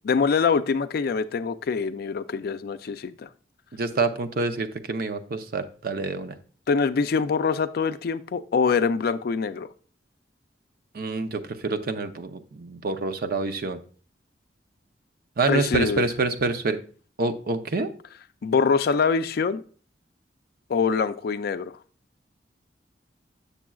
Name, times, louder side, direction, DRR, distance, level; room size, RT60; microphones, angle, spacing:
voice 1, 0.0-3.3 6.7-9.7 15.5-16.1 18.4-19.6 20.7-21.7, left 5 dB, 60° left, 12 dB, 0.4 m, -24 dB
voice 2, 3.7-6.3 10.9-13.8 15.4-16.8 17.2-17.9, right 3 dB, 55° right, 9 dB, 0.6 m, -27 dB
7.3 x 6.8 x 2.3 m, 0.41 s
head